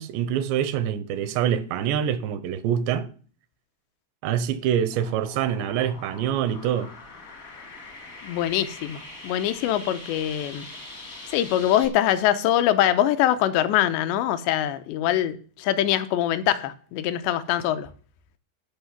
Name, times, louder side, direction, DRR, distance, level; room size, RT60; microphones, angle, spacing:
voice 1, 0.0-3.1 4.2-6.9, right 9 dB, 90° right, 3.0 m, -25 dB
sound 1, 4.9-11.9, left 2 dB, 60° left, 0.8 m, -42 dB
voice 2, 8.2-10.7 11.3-17.9, left 12 dB, 85° left, 2.9 m, -23 dB
14.5 x 5.5 x 5.7 m
omnidirectional pair, 5.0 m